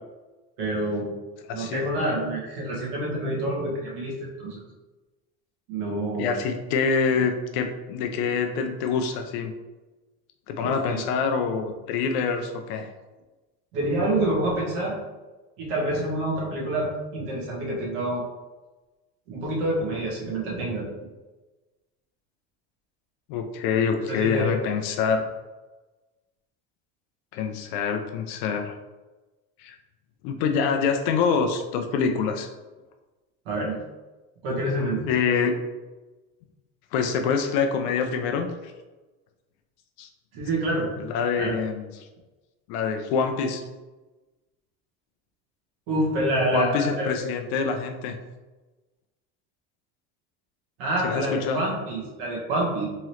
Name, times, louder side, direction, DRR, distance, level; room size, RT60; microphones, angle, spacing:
voice 1, 0.6-1.1 1.5-4.6 5.7-6.3 10.6-11.0 13.7-15.0 15.6-18.2 19.3-20.9 24.1-24.5 33.4-33.7 34.4-35.0 40.3-40.9 41.4-41.5 45.9-47.1 50.8-52.9, right 1 dB, 65° right, -3 dB, 1.5 m, -27 dB
voice 2, 1.5-1.8 6.2-9.5 10.5-12.9 23.3-25.2 27.3-28.7 29.6-29.8 30.2-32.5 35.1-35.5 36.9-38.5 40.0-40.1 41.0-41.9 42.7-43.6 46.5-48.2 51.0-51.6, left 5 dB, 55° left, 5 dB, 0.4 m, -25 dB
3.7 x 3.0 x 3.1 m, 1.2 s
cardioid pair, 175°, 30 cm